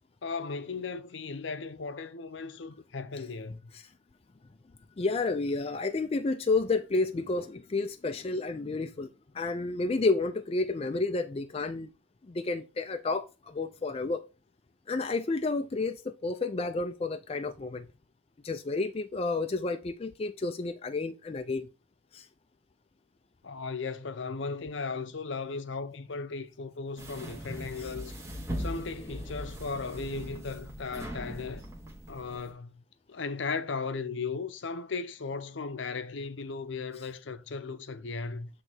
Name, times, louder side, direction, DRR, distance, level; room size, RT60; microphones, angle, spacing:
voice 1, 0.2-3.7 23.4-28.2 28.6-31.6 32.1-32.8 33.1-38.5, left 4 dB, 65° left, 0.7 m, -36 dB
voice 2, 5.0-11.9 12.3-14.2 14.9-17.9 18.4-21.7 22.1-22.3 27.8-27.9, left 3 dB, 30° left, 0.4 m, -31 dB
sound 1, 27.0-32.5, equal, 15° right, 1.2 m, -40 dB
8.0 x 3.3 x 4.4 m
head